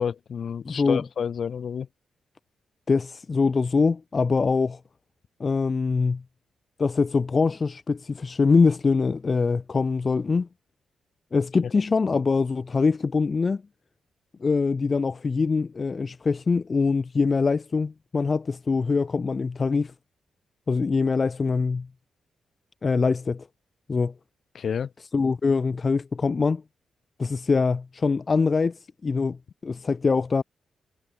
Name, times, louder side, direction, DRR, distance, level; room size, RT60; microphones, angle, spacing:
voice 1, 0.0-1.9 24.5-24.9, left 7 dB, 65° left, 6.4 m, -29 dB
voice 2, 0.6-1.0 2.9-4.8 5.4-6.2 6.8-10.5 11.3-13.6 14.4-19.9 20.7-21.9 22.8-23.5 23.9-24.1 25.1-26.6 27.2-30.4, left 4 dB, 45° left, 6.5 m, -23 dB
supercardioid pair, 50°, 0 cm